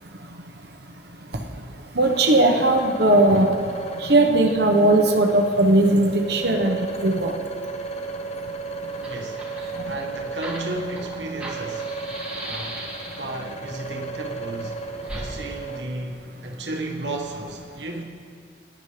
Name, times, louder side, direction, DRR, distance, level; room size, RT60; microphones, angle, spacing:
voice 1, 1.9-3.5 4.0-7.3, right 2 dB, 65° right, 4 dB, 1.2 m, -18 dB
sound 1, 2.0-15.8, right 4 dB, 40° left, 0.7 m, -34 dB
Fire, 8.6-8.7 8.9-13.4 15.0-15.3, right 1 dB, 10° right, 2.7 m, -37 dB
voice 2, 9.0-9.5 9.8-11.9 12.4-12.9 13.2-14.8 15.1-18.0, right 1 dB, 85° right, 1 dB, 1.5 m, -33 dB
20.0 x 11.5 x 3.4 m, 2.2 s
head